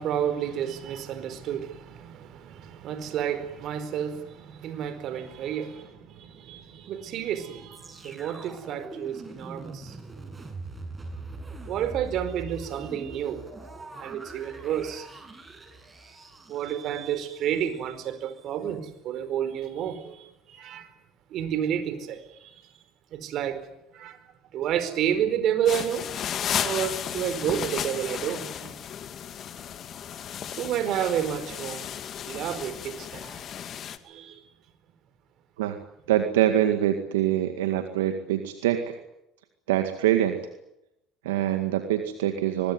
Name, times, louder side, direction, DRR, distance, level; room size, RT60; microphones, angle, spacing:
voice 1, 0.0-10.0 11.4-13.4 13.9-15.1 16.5-20.9 21.3-22.7 23.1-23.6 23.9-24.2 24.5-26.1 26.6-28.7 30.6-31.9 32.3-33.4 34.0-34.4, right 9 dB, 60° right, 4.6 m, -30 dB
sound 1, 7.7-17.8 18.4-18.5, right 3 dB, 25° right, 7.1 m, -42 dB
sound 2, 25.7-34.0, left 9 dB, 50° left, 2.3 m, -34 dB
voice 2, 36.1-39.0 39.7-40.4 41.2-42.7, right 11 dB, 85° right, 2.0 m, -24 dB
24.0 x 21.5 x 9.6 m
hypercardioid pair, 70°, 0 cm